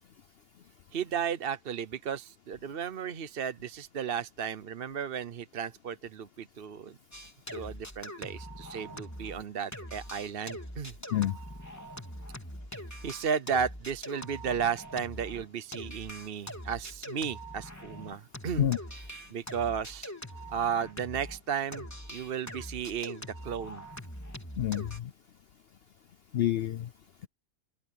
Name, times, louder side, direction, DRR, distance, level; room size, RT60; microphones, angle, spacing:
voice 1, 0.9-6.9 7.5-10.9 13.0-18.7 19.3-20.1 20.5-23.8, right 7 dB, 45° right, 0.9 m, -34 dB
sound 1, 7.1-9.5 9.7-21.4 21.7-25.0, equal, 10° left, 3.9 m, -43 dB
voice 2, 24.6-25.1 26.3-26.9, left 11 dB, 65° left, 0.6 m, -28 dB
open air
omnidirectional pair, 1.6 m